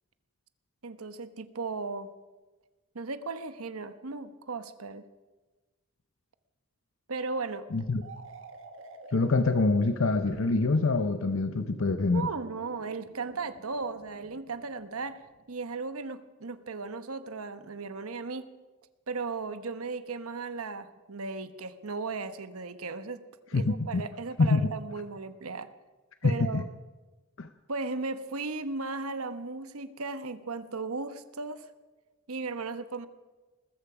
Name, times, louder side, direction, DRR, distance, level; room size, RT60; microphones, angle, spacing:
voice 1, 0.8-2.1 2.9-5.0 7.1-7.7 12.1-15.2 15.5-18.5 19.1-23.2 23.5-25.7 26.2-26.7 27.7-31.6 32.3-33.1, right 4 dB, 90° right, 11 dB, 1.1 m, -36 dB
voice 2, 7.7-8.0 9.1-12.3 23.5-24.0 24.4-24.7 26.2-26.5 27.4-27.5, left 3 dB, 65° left, 9 dB, 0.7 m, -25 dB
sound 1, 8.0-15.7, right 2 dB, 65° right, 1.6 m, -49 dB
20.5 x 14.0 x 5.0 m, 1.2 s
head